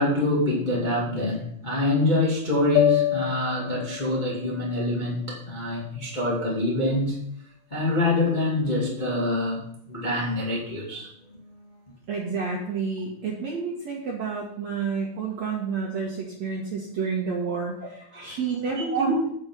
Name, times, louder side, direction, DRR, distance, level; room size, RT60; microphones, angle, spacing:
voice 1, 0.0-7.2 7.7-11.1 18.1-18.4 18.7-19.2, left 1 dB, 60° left, -5 dB, 0.5 m, -25 dB
sound 1, 2.8-7.0, left 12 dB, 85° left, 3.0 m, -29 dB
voice 2, 12.1-19.1, right 5 dB, 60° right, -2 dB, 1.8 m, -30 dB
8.9 x 7.4 x 5.4 m, 0.69 s
omnidirectional pair, 5.1 m